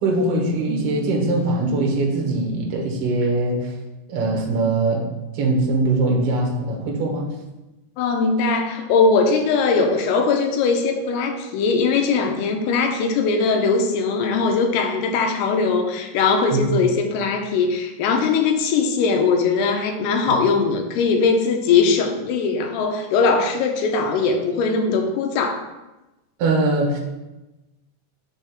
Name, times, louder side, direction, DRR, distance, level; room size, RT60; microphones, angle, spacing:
voice 1, 0.0-3.7 4.1-5.1 5.3-7.3 16.5-16.8 26.4-27.0, right 2 dB, 90° right, -1 dB, 1.3 m, -21 dB
voice 2, 8.0-25.6, left 4 dB, 85° left, 4 dB, 2.7 m, -20 dB
6.4 x 3.4 x 5.9 m, 1.0 s
omnidirectional pair, 4.6 m